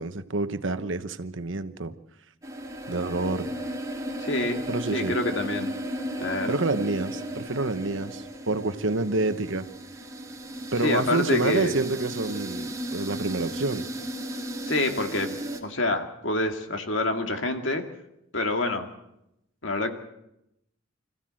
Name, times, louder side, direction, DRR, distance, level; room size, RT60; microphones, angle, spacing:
voice 1, 0.0-1.9 2.9-3.5 4.7-5.2 6.5-9.7 10.7-13.9, right 3 dB, 70° right, 10 dB, 1.1 m, -28 dB
sound 1, 2.4-15.6, right 1 dB, 15° right, 2.8 m, -35 dB
voice 2, 4.2-4.6 4.9-5.7 6.2-6.6 10.8-11.8 14.6-15.4 15.6-17.8 18.3-18.9 19.6-19.9, left 2 dB, 70° left, 4 dB, 2.3 m, -27 dB
26.0 x 15.0 x 7.7 m, 0.86 s
head